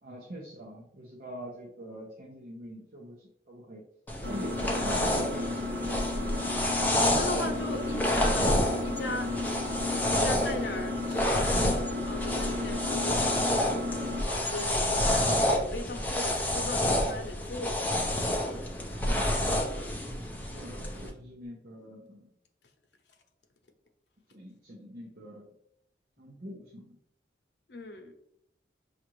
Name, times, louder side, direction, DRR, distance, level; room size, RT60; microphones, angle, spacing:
voice 1, 0.0-3.8 4.3-6.2 18.9-19.3 20.4-22.3 24.3-25.5 26.2-27.0, equal, 55° right, -4 dB, 0.7 m, -43 dB
sound 1, 4.1-21.1, left 1 dB, 10° left, 0.5 m, -29 dB
Engine, 4.2-14.2, left 2 dB, 75° right, 1.0 m, -34 dB
voice 2, 7.0-8.5 8.8-9.3 10.1-11.6 12.0-13.5 14.1-17.9 27.7-28.1, left 2 dB, 80° left, 4 dB, 0.7 m, -38 dB
5.7 x 2.5 x 3.0 m, 0.74 s
head